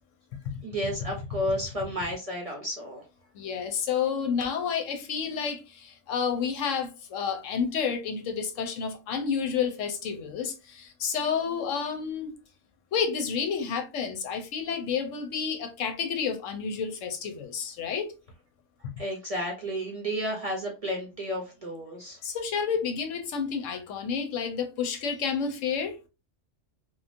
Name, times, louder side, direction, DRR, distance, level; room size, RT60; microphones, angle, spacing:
voice 1, 0.6-3.0 19.0-22.2, equal, 40° right, 0.6 m, -32 dB
voice 2, 3.3-12.3 12.9-18.1 22.2-26.0, left 6 dB, 85° left, 1.0 m, -30 dB
3.0 x 2.3 x 2.5 m
omnidirectional pair, 1.3 m